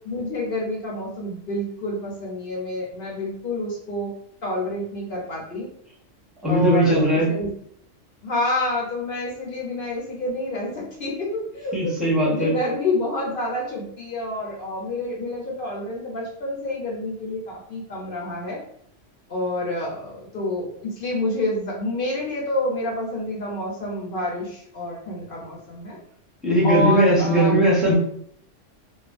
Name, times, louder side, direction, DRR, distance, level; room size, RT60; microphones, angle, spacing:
voice 1, 0.0-4.1 4.4-5.7 6.4-7.5 8.2-18.6 19.3-26.0 26.6-27.6, left 1 dB, 55° left, -3 dB, 0.7 m, -28 dB
voice 2, 6.4-7.4 11.7-12.5 26.4-27.9, right 1 dB, ahead, -6 dB, 0.7 m, -19 dB
2.3 x 2.3 x 2.4 m, 0.65 s
omnidirectional pair, 1.3 m